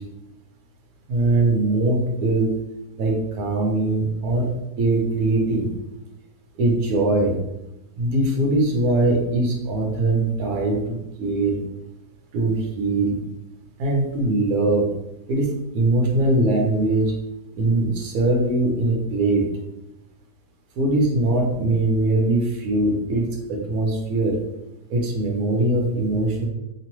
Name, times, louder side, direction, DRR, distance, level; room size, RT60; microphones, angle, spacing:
voice 1, 1.1-2.6 3.0-5.7 6.6-7.4 8.0-11.6 12.3-13.2 13.8-14.9 15.3-17.1 17.5-19.5 20.8-24.4 24.9-26.5, right 2 dB, 65° right, 0 dB, 1.1 m, -21 dB
3.0 x 2.0 x 2.9 m, 0.93 s
omnidirectional pair, 1.8 m